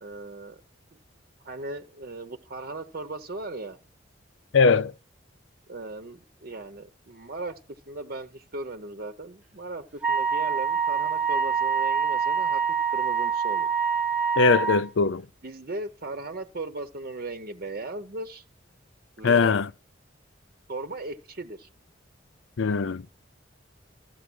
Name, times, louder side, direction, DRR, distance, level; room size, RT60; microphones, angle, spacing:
voice 1, 0.0-0.6 0.9-1.0 1.4-3.8 5.7-7.6 7.9-12.6 12.9-13.7 15.4-18.4 19.2-19.5 20.7-21.7, right 2 dB, 50° right, 0.8 m, -37 dB
voice 2, 4.5-4.9 14.4-15.2 19.2-19.7 22.6-23.1, left 4 dB, 75° left, 0.5 m, -21 dB
Wind instrument woodwind instrument, 10.0-14.8, right 6 dB, 5° right, 0.8 m, -25 dB
14.0 x 7.7 x 6.1 m
head